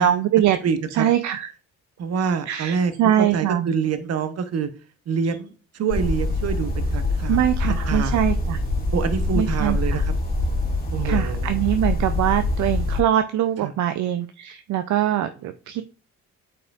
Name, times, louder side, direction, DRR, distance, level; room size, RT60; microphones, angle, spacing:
voice 1, 0.0-0.6 0.9-1.5 2.5-3.7 7.3-8.6 9.4-10.0 11.0-15.8, right 11 dB, 70° right, 9 dB, 0.5 m, -22 dB
voice 2, 0.6-1.1 2.0-2.9 3.2-4.7 5.1-8.2 8.9-10.1 10.9-11.6 13.6-13.7, right 6 dB, 55° right, 10 dB, 1.0 m, -26 dB
sound 1, 5.9-13.0, left 2 dB, 30° left, 2.4 m, -24 dB
8.8 x 4.6 x 2.5 m, 0.38 s
cardioid pair, 90°, 30 cm